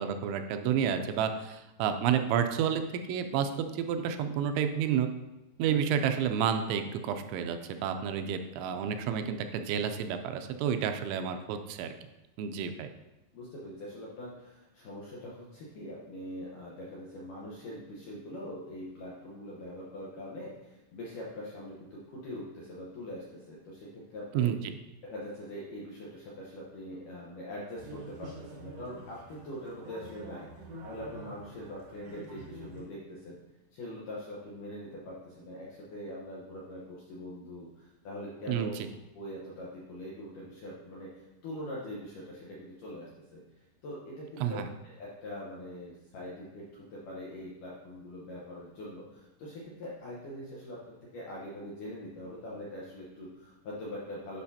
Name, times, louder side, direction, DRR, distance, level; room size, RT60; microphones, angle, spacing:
voice 1, 0.0-5.1 5.6-11.9 12.4-12.9 24.3-24.8 38.5-38.7 44.4-44.7, right 8 dB, 85° right, 7 dB, 2.9 m, -30 dB
voice 2, 13.3-24.5 25.1-33.4 33.7-38.7 39.1-43.4 43.8-44.6 44.8-54.4, left 1 dB, 75° left, -6 dB, 1.9 m, -43 dB
sound 1, 27.8-32.9, right 2 dB, 65° right, 1.5 m, -47 dB
10.5 x 5.9 x 2.8 m, 1.0 s
omnidirectional pair, 5.3 m